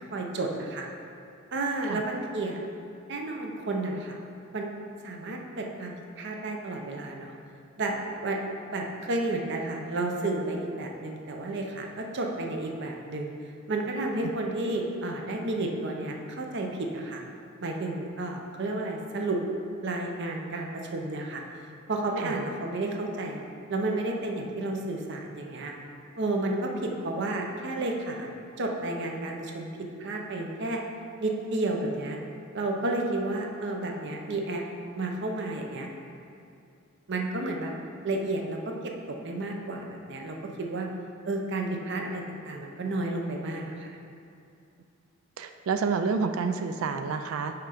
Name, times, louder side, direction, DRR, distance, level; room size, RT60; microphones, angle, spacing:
voice 1, 0.1-0.9 1.5-2.6 3.1-4.2 4.5-4.7 5.0-7.3 7.8-8.4 8.7-13.3 13.7-17.2 17.6-19.4 19.8-21.4 21.9-23.4 23.7-25.7 26.2-28.3 28.6-29.7 30.0-30.8 31.2-32.2 32.5-34.6 34.9-35.9 37.1-37.7 38.0-40.9 41.3-44.0, right 2 dB, 60° right, 1 dB, 0.7 m, -31 dB
voice 2, 45.4-47.5, right 5 dB, 75° right, 7 dB, 0.3 m, -29 dB
5.8 x 4.3 x 5.0 m, 2.6 s
head